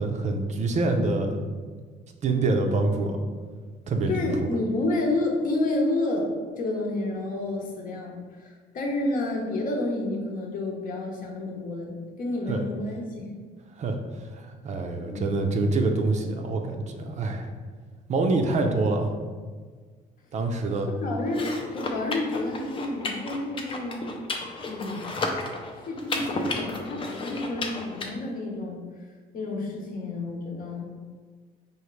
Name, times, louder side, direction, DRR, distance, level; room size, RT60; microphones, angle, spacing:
voice 1, 0.0-1.5 2.2-3.2 3.9-4.3 12.5-12.6 13.8-14.0 14.3-17.5 18.1-19.1 20.3-20.9, right 3 dB, 45° right, 4 dB, 0.5 m, -25 dB
voice 2, 4.1-6.3 6.6-13.3 14.9-15.4 21.0-24.0 24.7-25.1 25.9-28.8 29.3-30.9, left 2 dB, 55° left, 0 dB, 0.8 m, -30 dB
sound 1, 21.3-28.1, left 3 dB, 30° left, 0.5 m, -33 dB
4.9 x 2.5 x 3.1 m, 1.5 s
cardioid pair, 110°, 17 cm